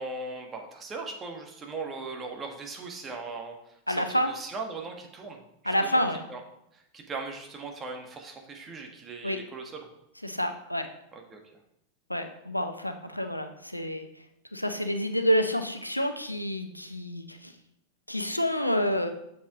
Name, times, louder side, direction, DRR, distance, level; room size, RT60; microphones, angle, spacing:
voice 1, 0.0-6.0 6.3-6.4 6.7-9.9 11.1-11.4, right 3 dB, 20° right, 2 dB, 1.5 m, -39 dB
voice 2, 3.9-4.3 5.6-6.2 9.2-9.4 10.2-10.9 12.1-14.1 14.5-17.5 18.1-19.1, equal, 90° left, 7 dB, 0.6 m, -28 dB
7.2 x 7.2 x 3.7 m, 0.78 s
figure-of-eight pair, 90°, 0 cm